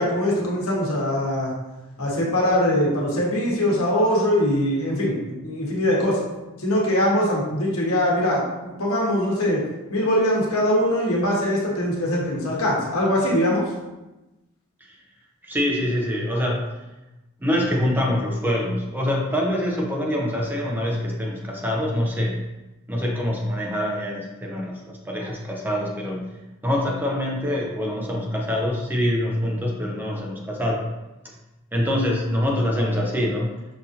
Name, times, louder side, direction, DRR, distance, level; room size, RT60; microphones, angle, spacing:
voice 1, 0.0-1.5 2.0-6.2 6.6-9.6 9.9-13.6, left 1 dB, 90° left, -4 dB, 1.1 m, -22 dB
voice 2, 15.4-16.7 17.4-22.4 22.9-26.3 26.6-30.9 31.7-33.5, left 1 dB, 10° right, -1 dB, 0.5 m, -25 dB
5.6 x 2.5 x 2.7 m, 1.0 s
head